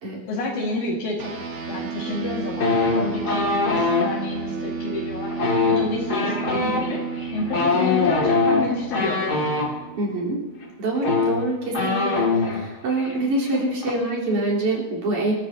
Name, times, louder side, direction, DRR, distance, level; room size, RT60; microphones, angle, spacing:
voice 1, 0.3-1.4 1.7-7.0 7.3-9.2 13.5-13.6, left 2 dB, 80° left, -3 dB, 3.4 m, -29 dB
sound 1, 1.2-10.9, right 5 dB, 60° right, 2.5 m, -32 dB
sound 2, 2.6-4.1 5.3-9.7 10.6-10.7 11.0-12.6 12.9-13.2 13.4-13.9, left 4 dB, 35° left, 2.4 m, -22 dB
voice 2, 10.0-10.4 10.8-15.3, right 2 dB, 80° right, -5 dB, 5.2 m, -25 dB
26.5 x 13.5 x 2.8 m, 1.2 s
omnidirectional pair, 3.5 m